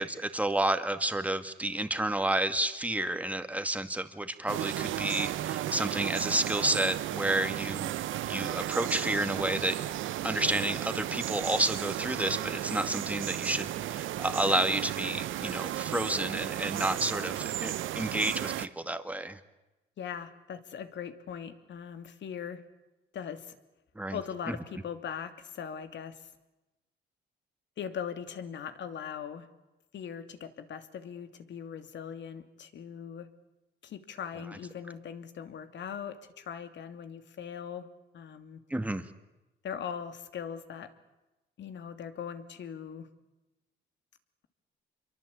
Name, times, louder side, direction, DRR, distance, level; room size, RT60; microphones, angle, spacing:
voice 1, 0.0-7.9 8.3-9.8 10.2-19.4 24.0-24.2 24.5-24.6 38.7-39.0, right 1 dB, 5° right, 8 dB, 2.2 m, -30 dB
sound 1, 4.5-18.7, right 13 dB, 80° right, 0.9 m, -34 dB
voice 2, 20.0-22.6 23.1-23.6 24.1-26.3 27.8-29.5 29.9-33.3 33.8-37.9 38.1-38.6 39.6-40.9 41.6-43.1, left 7 dB, 65° left, 9 dB, 2.8 m, -40 dB
28.0 x 23.0 x 8.6 m, 1.0 s
cardioid pair, 90°, 20 cm